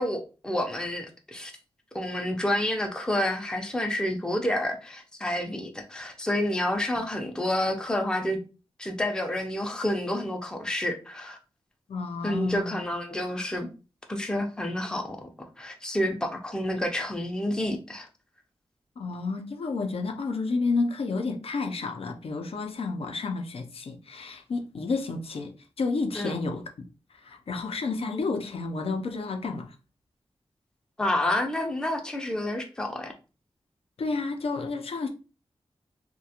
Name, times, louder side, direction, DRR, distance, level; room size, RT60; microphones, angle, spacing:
voice 1, 0.0-1.5 1.9-8.4 8.8-11.4 12.2-13.7 14.1-15.2 15.6-18.1 26.2-26.3 31.0-33.1, left 1 dB, 5° left, 0.4 m, -29 dB
voice 2, 11.9-12.8 19.0-26.7 27.2-29.7 34.0-35.1, left 3 dB, 65° left, 0.4 m, -30 dB
2.4 x 2.2 x 2.8 m
wide cardioid pair, 110°, 10 cm